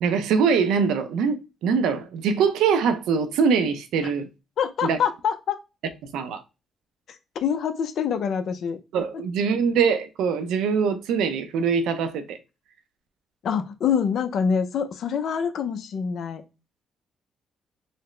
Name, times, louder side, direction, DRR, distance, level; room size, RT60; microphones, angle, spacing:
voice 1, 0.0-4.3 4.8-5.0 6.1-6.4 8.9-12.4, right 6 dB, 90° right, 0.5 m, -23 dB
voice 2, 4.6-5.6 7.3-8.8 9.1-9.2 13.4-16.4, left 7 dB, 65° left, 0.6 m, -25 dB
4.0 x 2.1 x 3.2 m
cardioid pair, 90°, 0 cm